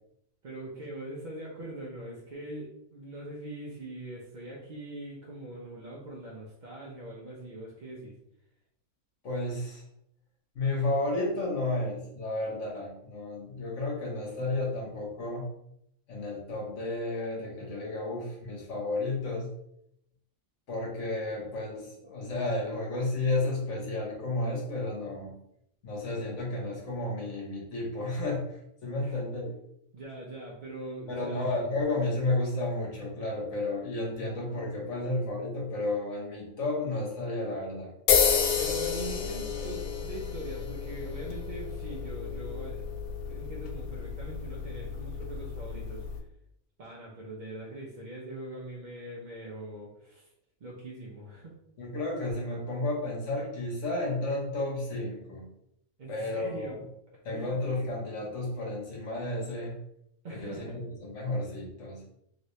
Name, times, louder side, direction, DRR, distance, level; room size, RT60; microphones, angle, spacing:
voice 1, 0.4-8.1 29.0-29.2 29.9-31.4 38.6-42.9 43.3-46.1 46.8-50.3 50.6-51.5 56.0-56.8 57.3-57.6 60.2-60.7, right 1 dB, 60° right, -4 dB, 0.5 m, -42 dB
voice 2, 9.2-9.8 10.5-15.5 16.1-19.5 20.7-25.3 25.8-29.5 31.1-37.9 51.8-55.5 56.1-56.7 57.2-59.7 60.3-62.0, left 2 dB, 60° left, -2 dB, 1.3 m, -32 dB
sound 1, 38.1-46.2, left 7 dB, 90° left, 1.1 m, -31 dB
3.0 x 2.8 x 3.1 m, 0.76 s
omnidirectional pair, 1.5 m